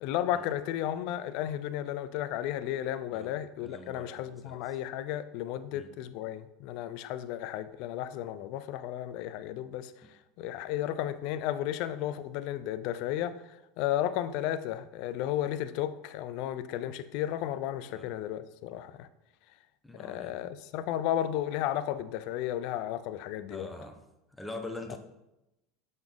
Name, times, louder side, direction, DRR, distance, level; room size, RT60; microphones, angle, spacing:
voice 1, 0.0-19.1 20.0-23.7, left 12 dB, 65° left, 13 dB, 0.4 m, -33 dB
voice 2, 3.6-4.8 5.7-5.9 10.0-10.1 17.9-18.1 19.8-20.4 23.5-24.0 24.3-25.0, left 2 dB, 10° left, 5 dB, 0.8 m, -44 dB
6.9 x 4.0 x 3.5 m, 0.93 s
hypercardioid pair, 90°, 0 cm